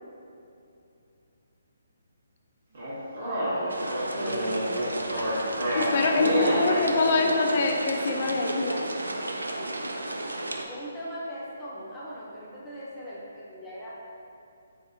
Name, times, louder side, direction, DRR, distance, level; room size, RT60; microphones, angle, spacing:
sound 1, 2.7-6.8, right 1 dB, 55° right, 1.5 m, -29 dB
voice 1, 3.2-3.9 4.1-5.0 5.8-7.4 9.6-9.7 10.7-13.9, equal, 10° left, -9 dB, 0.7 m, -37 dB
sound 2, 3.7-10.6, right 1 dB, 90° right, 0.3 m, -33 dB
voice 2, 5.7-8.9, left 3 dB, 50° left, 2 dB, 0.4 m, -24 dB
3.5 x 3.4 x 2.5 m, 2.6 s
figure-of-eight pair, 145°, 0 cm